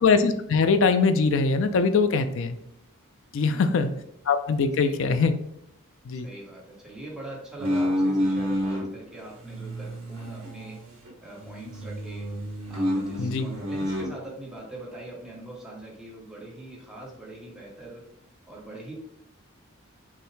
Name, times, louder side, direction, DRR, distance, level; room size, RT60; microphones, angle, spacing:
voice 1, 0.0-2.6 3.3-3.9 4.3-5.4 6.1-6.3 13.2-13.5, left 4 dB, 60° left, 10 dB, 0.4 m, -22 dB
voice 2, 3.4-3.7 4.8-5.1 6.2-10.8 11.2-12.3 12.7-18.0 18.5-18.9, right 1 dB, 5° right, -4 dB, 0.9 m, -42 dB
sound 1, 7.6-8.9 9.4-11.1 11.4-14.1, equal, 65° right, 1.1 m, -29 dB
5.5 x 2.1 x 3.1 m, 0.75 s
head